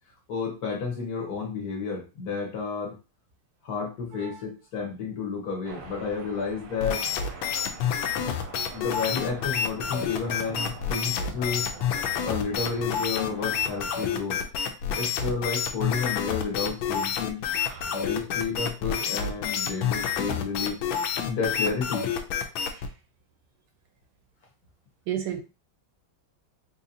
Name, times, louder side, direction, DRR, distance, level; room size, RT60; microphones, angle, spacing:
voice 1, 0.3-3.0 3.6-7.0 8.7-11.7 12.2-14.4 15.0-17.4 17.9-20.8 21.2-22.1, left 5 dB, 60° left, 1.3 m, -31 dB
voice 2, 4.1-4.4 17.6-18.0 22.7-22.9 25.1-25.4, right 10 dB, 80° right, 1.3 m, -34 dB
sound 1, 5.6-14.1, right 3 dB, 60° right, 1.0 m, -44 dB
sound 2, 6.8-22.9, left 7 dB, 85° left, 1.4 m, -28 dB
4.1 x 2.8 x 2.7 m
omnidirectional pair, 2.1 m